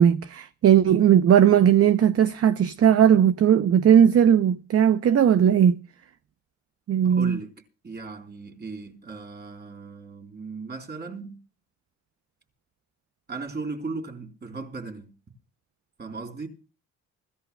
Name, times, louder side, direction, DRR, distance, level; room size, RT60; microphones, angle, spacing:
voice 1, 0.0-5.8 6.9-7.4, right 9 dB, 50° right, 0.7 m, -18 dB
voice 2, 7.0-7.5 7.8-11.4 13.3-15.1 16.0-16.5, right 4 dB, 35° right, 3.9 m, -37 dB
25.0 x 14.5 x 2.3 m
cardioid pair, 90°, 30 cm